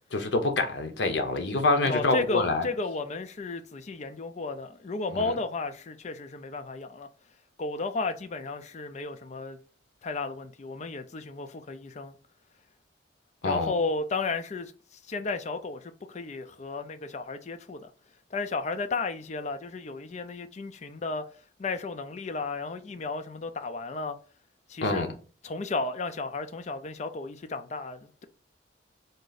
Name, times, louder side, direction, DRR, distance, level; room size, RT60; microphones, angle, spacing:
voice 1, 0.1-2.7 5.1-5.3 13.4-13.7 24.8-25.1, left 2 dB, 75° left, 0.8 m, -26 dB
voice 2, 1.8-7.1 7.6-9.6 10.0-12.2 13.4-17.9 18.3-21.2 21.6-24.2 24.7-25.1 25.4-28.3, left 3 dB, 40° left, 0.4 m, -33 dB
3.9 x 2.5 x 3.9 m
head